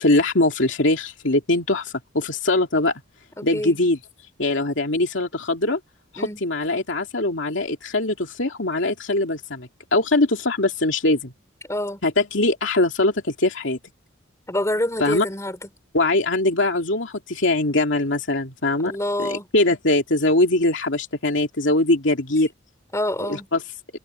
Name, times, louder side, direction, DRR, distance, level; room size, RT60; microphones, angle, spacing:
voice 1, 0.0-2.9 3.4-4.0 4.4-5.8 6.1-11.3 12.0-13.8 15.0-15.2 15.9-18.9 19.2-22.5 23.3-23.6, left 2 dB, 70° left, 2.8 m, -22 dB
voice 2, 11.7-12.0 14.5-15.7 18.8-19.5 22.9-23.5, left 1 dB, 15° left, 6.0 m, -26 dB
head